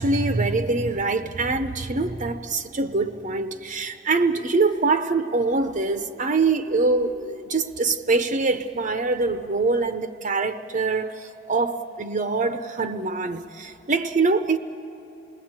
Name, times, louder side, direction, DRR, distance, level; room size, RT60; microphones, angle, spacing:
voice 1, 0.0-14.6, right 3 dB, 35° right, 9 dB, 0.6 m, -24 dB
28.0 x 20.0 x 8.8 m, 3.0 s
head